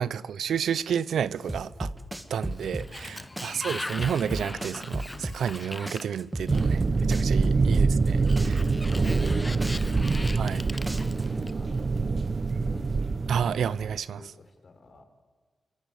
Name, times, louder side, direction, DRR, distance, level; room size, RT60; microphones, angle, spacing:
voice 1, 0.0-1.9 2.3-8.6 10.4-10.6 13.3-14.2, right 8 dB, 90° right, 0.7 m, -30 dB
sound 1, 1.5-3.1 3.4-5.6 5.9-8.1 8.4-10.6 10.9-11.5, right 1 dB, 15° right, 2.0 m, -33 dB
Sliding door, 2.3-7.0 8.1-11.8, left 2 dB, 15° left, 0.7 m, -40 dB
voice 2, 3.0-3.4 7.3-7.7 8.2-8.3 8.9-10.0 10.2-13.3 14.1-15.1, left 3 dB, 50° left, 3.9 m, -49 dB
sound 2, 6.5-14.0, right 4 dB, 45° right, 1.1 m, -25 dB
26.0 x 23.5 x 8.4 m
cardioid pair, 90°, 0 cm